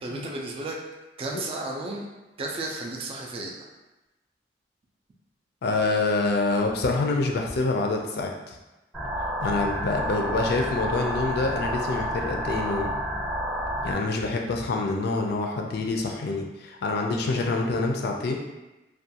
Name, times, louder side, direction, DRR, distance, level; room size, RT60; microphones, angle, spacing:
voice 1, 0.0-0.8 1.2-2.1 2.4-3.7, right 2 dB, 30° right, -1 dB, 0.3 m, -33 dB
voice 2, 5.6-8.6 9.4-12.9 13.8-18.3, left 3 dB, 60° left, 1 dB, 0.4 m, -26 dB
sound 1, 8.9-13.9, equal, 5° right, 0.7 m, -30 dB
2.4 x 2.2 x 2.7 m, 1.0 s
head